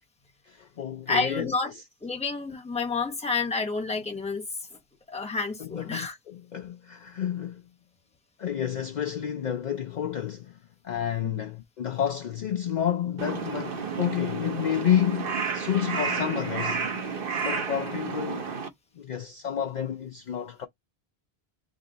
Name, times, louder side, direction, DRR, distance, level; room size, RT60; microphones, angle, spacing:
voice 1, 0.5-1.8 5.6-7.6 8.4-16.9 17.4-18.5 19.0-20.7, left 9 dB, 55° left, 0.6 m, -30 dB
voice 2, 1.1-1.7 2.0-4.4 5.1-6.2 11.2-11.4, left 4 dB, 5° left, 0.8 m, -29 dB
Crow, 13.2-18.7, right 5 dB, 60° right, 1.0 m, -31 dB
3.7 x 2.8 x 3.9 m
omnidirectional pair, 1.0 m